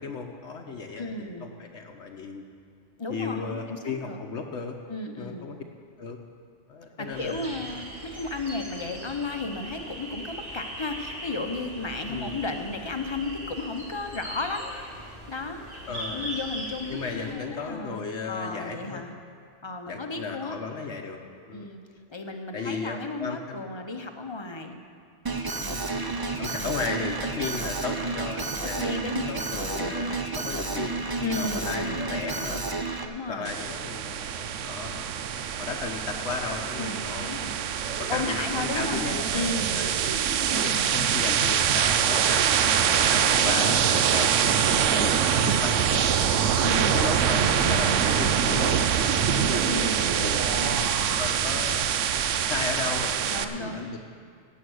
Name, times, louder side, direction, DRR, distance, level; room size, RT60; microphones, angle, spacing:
voice 1, 0.0-1.1 1.4-2.4 3.1-4.8 5.2-5.6 6.0-6.2 6.7-7.5 12.1-12.4 15.9-16.3 16.9-19.0 19.9-21.2 21.5-21.7 22.5-23.6 25.6-25.9 26.4-31.0 31.4-32.7 33.3-35.3 35.6-37.3 38.0-40.2 40.5-42.5 42.9-46.1 46.7-51.8 52.4-54.0, left 4 dB, 70° left, 2 dB, 1.1 m, -35 dB
voice 2, 1.0-1.5 3.0-4.2 4.9-5.5 7.0-14.9 15.3-15.6 16.1-19.1 19.6-20.6 21.5-21.8 22.1-24.8 26.5-26.9 28.8-30.0 31.2-32.1 33.0-33.5 36.8-37.5 38.1-39.0 39.3-41.0 42.7-43.8 46.6-47.0 49.7-51.0 53.3-54.0, left 3 dB, 25° left, 5 dB, 0.8 m, -34 dB
sound 1, 7.1-17.3, right 1 dB, 55° right, 2.7 m, -40 dB
Alarm, 25.3-33.1, right 3 dB, 25° right, 0.5 m, -31 dB
sound 2, 33.4-53.4, right 8 dB, 75° right, 1.0 m, -24 dB
16.0 x 8.3 x 6.3 m, 2.2 s
omnidirectional pair, 1.3 m